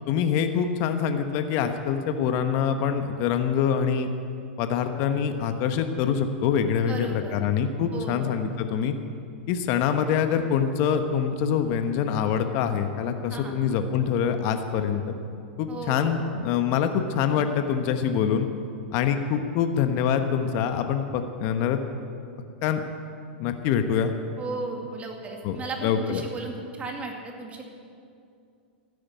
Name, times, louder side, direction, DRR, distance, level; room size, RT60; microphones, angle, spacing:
voice 1, 0.1-4.1 4.6-8.9 9.5-15.1 15.6-18.5 18.9-21.8 22.6-22.8 23.4-24.1 25.4-25.6 25.8-26.2, left 7 dB, 50° left, 7 dB, 1.1 m, -25 dB
voice 2, 6.8-7.4 7.9-8.3 13.3-13.5 15.7-16.1 24.4-27.6, right 3 dB, 20° right, 2 dB, 2.3 m, -35 dB
13.5 x 10.0 x 8.5 m, 2.5 s
hypercardioid pair, 120°, 6 cm